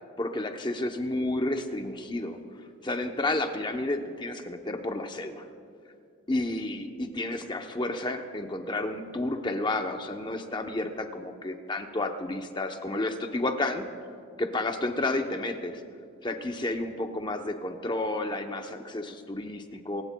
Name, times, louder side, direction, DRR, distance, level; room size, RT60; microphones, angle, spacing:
voice 1, 0.2-2.4 2.8-5.4 6.3-13.8 14.4-15.8 16.2-20.0, left 2 dB, 20° left, 5 dB, 0.7 m, -31 dB
25.0 x 15.5 x 2.3 m, 2.4 s
head